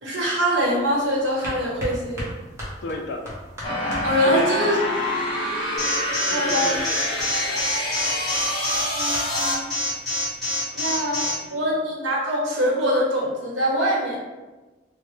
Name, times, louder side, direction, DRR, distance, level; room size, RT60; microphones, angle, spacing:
voice 1, 0.0-2.3 4.0-4.8 6.3-6.8 8.9-9.7 10.7-14.2, equal, 80° right, -4 dB, 0.9 m, -24 dB
sound 1, 0.6-10.4, equal, 15° right, 0.9 m, -40 dB
voice 2, 2.8-3.2 4.2-4.6 6.3-7.6 10.7-11.6, left 1 dB, 60° left, 3 dB, 0.4 m, -33 dB
sound 2, 3.6-9.5, equal, 25° left, 0.8 m, -26 dB
Alarm, 5.8-11.3, left 2 dB, ahead, 1.5 m, -26 dB
3.1 x 2.1 x 3.1 m, 1.2 s
head